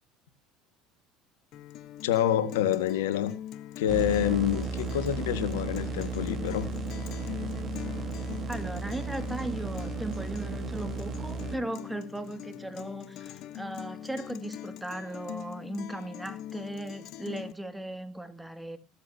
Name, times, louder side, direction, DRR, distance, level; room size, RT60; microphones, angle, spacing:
Guitar, 1.5-17.5, left 11 dB, 60° left, 1.3 m, -42 dB
voice 1, 2.0-3.3 3.8-6.7, left 11 dB, 85° left, 1.7 m, -27 dB
sound 1, 3.9-11.6, right 4 dB, 35° right, 4.0 m, -35 dB
voice 2, 8.5-18.8, right 1 dB, 5° right, 2.3 m, -37 dB
16.5 x 14.0 x 2.8 m
hypercardioid pair, 85°, 0 cm